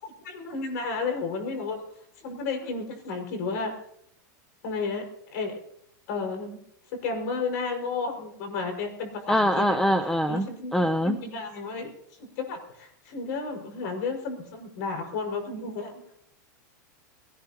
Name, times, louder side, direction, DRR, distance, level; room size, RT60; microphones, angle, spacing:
voice 1, 0.0-1.8 2.2-3.7 4.6-5.5 6.1-6.6 6.9-9.7 10.3-11.9 12.4-16.0, left 4 dB, 60° left, 4 dB, 5.6 m, -32 dB
voice 2, 9.3-10.5 10.7-11.2, equal, 5° left, 10 dB, 0.6 m, -23 dB
23.5 x 18.0 x 3.0 m, 0.72 s
supercardioid pair, 140°, 10 cm